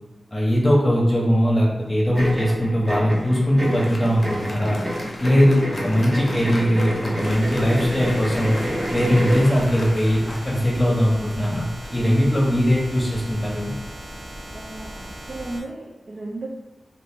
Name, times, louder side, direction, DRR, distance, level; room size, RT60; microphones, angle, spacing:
voice 1, 0.3-4.8 5.2-8.6 8.9-11.7 11.9-13.7, equal, 15° left, -4 dB, 0.9 m, -20 dB
sound 1, 2.1-9.5, equal, 25° right, 0.9 m, -29 dB
Applause, 3.1-12.9, left 1 dB, 45° left, 0.6 m, -39 dB
sound 2, 7.2-15.6, equal, 75° right, 0.9 m, -38 dB
voice 2, 14.5-16.5, right 2 dB, 50° right, -4 dB, 0.4 m, -35 dB
2.9 x 2.5 x 3.5 m, 1.1 s
wide cardioid pair, 135°, 0 cm